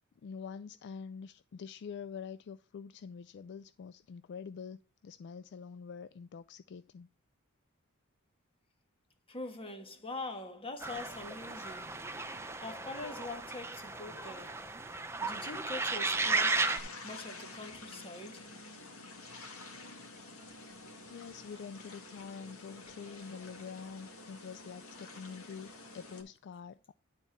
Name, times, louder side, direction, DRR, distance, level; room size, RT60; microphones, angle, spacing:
voice 1, 0.2-7.1 21.1-26.9, left 6 dB, 55° left, 0.3 m, -46 dB
voice 2, 9.3-12.0 12.6-14.7 15.2-16.7 17.0-18.5, left 2 dB, 25° left, 1.5 m, -43 dB
sound 1, 10.8-16.8, right 3 dB, 10° right, 0.6 m, -35 dB
sound 2, 16.1-26.2, left 2 dB, 75° left, 1.8 m, -49 dB
11.0 x 4.2 x 5.9 m
head